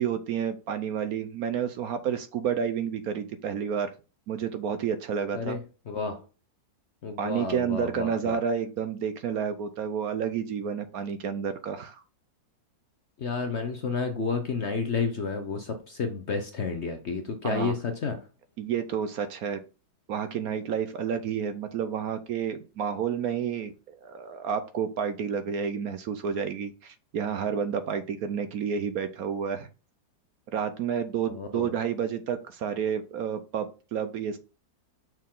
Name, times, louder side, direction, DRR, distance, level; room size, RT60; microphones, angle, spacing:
voice 1, 0.0-3.9 4.3-5.6 7.2-12.0 17.4-17.7 18.6-19.6 20.1-29.7 30.5-34.4, right 7 dB, 65° right, 10 dB, 1.0 m, -30 dB
voice 2, 5.3-6.2 7.0-8.4 13.2-18.2 31.3-31.7, left 4 dB, 55° left, 6 dB, 0.8 m, -31 dB
6.3 x 4.4 x 3.7 m, 0.32 s
omnidirectional pair, 2.0 m